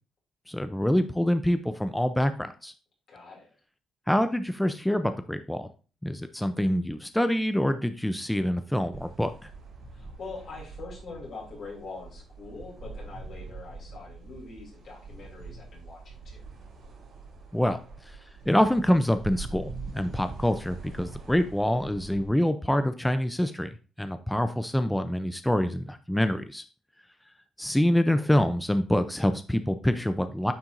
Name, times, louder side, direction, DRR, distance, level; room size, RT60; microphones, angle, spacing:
voice 1, 0.5-2.7 4.1-5.7 6.0-9.3 17.5-17.8 18.1-18.2 18.5-26.6 27.6-30.5, left 1 dB, 5° left, 9 dB, 0.5 m, -26 dB
voice 2, 3.1-3.5 9.9-16.4, left 3 dB, 60° left, -4 dB, 3.1 m, -43 dB
sound 1, 8.9-22.3, right 3 dB, 55° right, 3.4 m, -44 dB
9.5 x 4.4 x 2.6 m, 0.35 s
cardioid pair, 90°, 0 cm